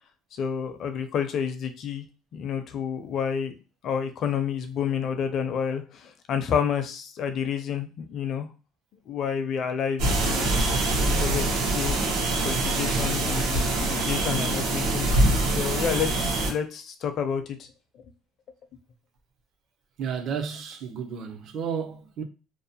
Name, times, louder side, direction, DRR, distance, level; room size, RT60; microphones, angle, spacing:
voice 1, 0.3-2.1 2.3-3.5 3.8-8.5 9.1-10.5 11.0-12.0 12.3-15.1 15.5-17.7, left 7 dB, 45° left, 0.4 m, -29 dB
sound 1, 10.0-16.5, right 2 dB, 85° right, 0.8 m, -24 dB
voice 2, 20.0-22.2, right 7 dB, 50° right, 0.5 m, -32 dB
2.6 x 2.0 x 2.7 m
cardioid pair, 135°, 0 cm